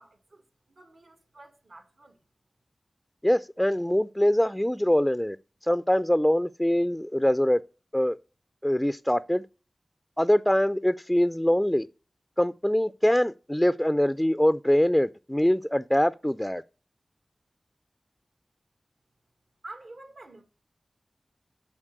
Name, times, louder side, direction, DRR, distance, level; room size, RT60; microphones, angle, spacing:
voice 1, 0.0-2.2 19.6-20.4, right 2 dB, 75° right, 1.8 m, -48 dB
voice 2, 3.2-5.4 5.6-7.6 7.9-8.2 8.6-9.4 10.2-11.9 12.4-16.6, equal, 10° left, 0.4 m, -23 dB
7.3 x 4.3 x 6.6 m
cardioid pair, 45°, 0 cm